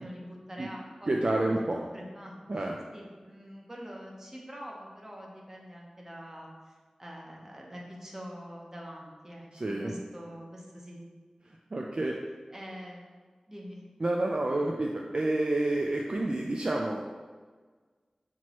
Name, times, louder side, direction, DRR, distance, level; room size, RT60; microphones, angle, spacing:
voice 1, 0.0-1.6 1.9-11.0 12.5-13.2 13.5-13.8, equal, 20° right, -2 dB, 0.9 m, -45 dB
voice 2, 1.1-1.8 2.5-2.8 9.5-10.0 11.7-12.2 14.0-17.0, right 2 dB, 50° right, 0 dB, 0.3 m, -29 dB
6.0 x 2.9 x 3.0 m, 1.4 s
wide cardioid pair, 60°, 2 cm